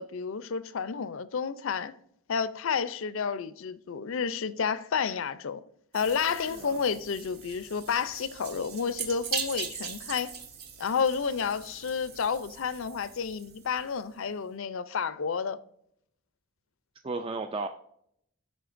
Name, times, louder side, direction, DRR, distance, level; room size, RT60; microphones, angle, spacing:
voice 1, 0.0-1.9 2.3-5.6 5.9-10.3 10.8-15.6, left 6 dB, 65° left, 0.5 m, -30 dB
sound 1, 5.9-14.1, right 6 dB, 45° right, 1.2 m, -40 dB
voice 2, 6.4-6.7 17.0-17.7, right 3 dB, 25° right, 0.3 m, -34 dB
12.5 x 5.1 x 2.5 m
head